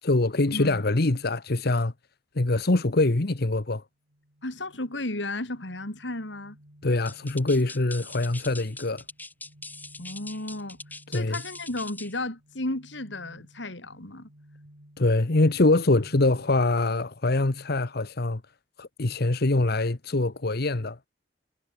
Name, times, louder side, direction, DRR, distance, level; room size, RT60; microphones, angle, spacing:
voice 1, 0.0-1.9 2.3-3.8 6.8-9.0 11.1-11.4 15.0-18.4 18.8-21.0, left 2 dB, 60° left, 1.2 m, -24 dB
voice 2, 0.5-0.8 4.4-6.6 10.0-10.8 11.1-14.3, left 2 dB, 85° left, 4.0 m, -34 dB
sound 1, 4.0-16.8, equal, 80° right, 6.9 m, -55 dB
sound 2, 7.1-12.2, left 2 dB, 10° left, 1.9 m, -42 dB
head